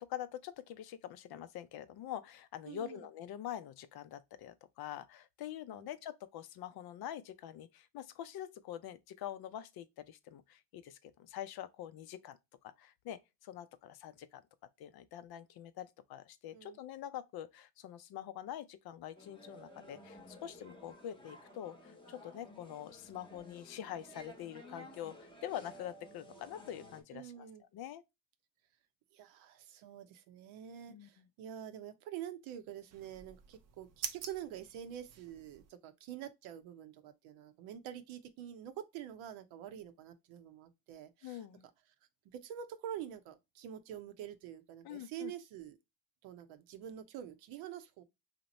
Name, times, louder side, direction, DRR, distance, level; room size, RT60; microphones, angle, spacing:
voice 1, 0.0-12.4 12.6-14.4 14.8-27.5 27.7-28.0 30.9-31.2 41.2-41.7 44.8-45.3, left 11 dB, 50° left, 0.5 m, -45 dB
voice 2, 2.7-3.1 5.7-5.9 16.5-16.8 27.1-27.6 29.1-41.4 42.2-45.8 46.2-48.0, right 10 dB, 70° right, 0.8 m, -47 dB
sound 1, 19.1-27.0, left 1 dB, 10° left, 0.8 m, -54 dB
sound 2, 32.9-35.7, right 8 dB, 35° right, 0.4 m, -46 dB
2.9 x 2.0 x 4.1 m
supercardioid pair, 80°, 50 cm